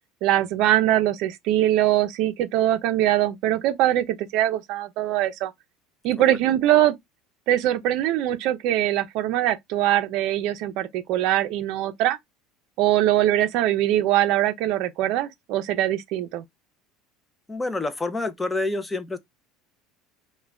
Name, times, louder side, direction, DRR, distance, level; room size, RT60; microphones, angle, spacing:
voice 1, 0.2-5.5 6.0-7.0 7.5-12.2 12.8-16.4, right 13 dB, 65° right, 0.4 m, -22 dB
voice 2, 17.5-19.2, left 2 dB, 10° left, 0.4 m, -27 dB
2.4 x 2.1 x 3.0 m
supercardioid pair, 120°, 0 cm